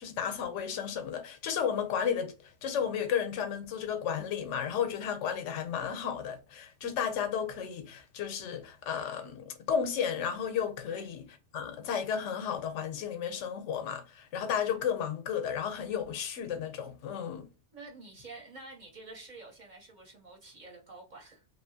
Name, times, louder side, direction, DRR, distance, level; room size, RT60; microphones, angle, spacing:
voice 1, 0.0-11.2 11.5-17.5, left 8 dB, 85° left, 0.9 m, -33 dB
voice 2, 17.7-21.5, right 3 dB, 45° right, 0.8 m, -49 dB
2.7 x 2.2 x 2.6 m
omnidirectional pair, 1.2 m